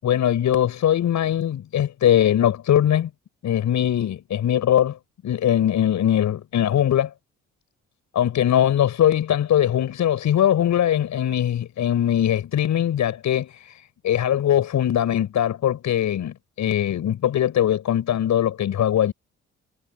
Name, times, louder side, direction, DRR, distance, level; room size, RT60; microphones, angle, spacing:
voice 1, 0.0-3.1 3.4-5.0 5.2-7.1 8.1-13.8 14.0-19.1, left 10 dB, 70° left, 6.7 m, -21 dB
cardioid pair, 90°, 30 cm